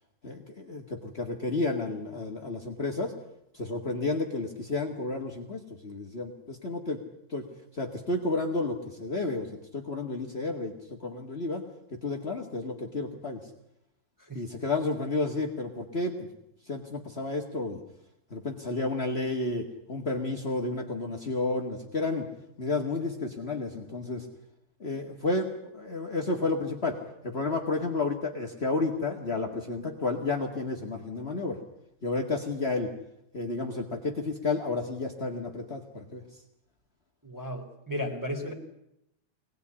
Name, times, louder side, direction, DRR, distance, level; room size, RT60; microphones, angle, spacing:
voice 1, 0.2-3.1 3.5-7.0 7.3-7.5 7.7-10.7 11.0-11.6 11.9-13.4 14.3-16.3 16.7-17.8 18.3-22.3 22.6-24.3 24.8-31.6 32.0-32.9 33.3-36.2, left 3 dB, 35° left, 1 dB, 0.9 m, -31 dB
voice 2, 37.2-38.5, equal, 5° right, 3 dB, 3.8 m, -34 dB
24.0 x 19.5 x 9.8 m, 0.80 s
omnidirectional pair, 4.4 m